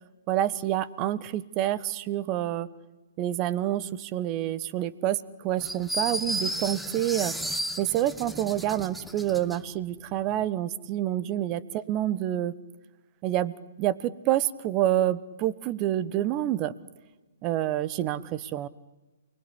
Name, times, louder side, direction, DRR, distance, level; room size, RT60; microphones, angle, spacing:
voice 1, 0.3-2.7 3.2-7.3 7.8-12.5 13.2-16.7 17.4-18.7, right 13 dB, 30° right, 15 dB, 1.2 m, -28 dB
sound 1, 5.6-9.6, right 1 dB, ahead, 0.9 m, -33 dB
29.0 x 20.5 x 10.0 m, 1.2 s
figure-of-eight pair, 130°, 0 cm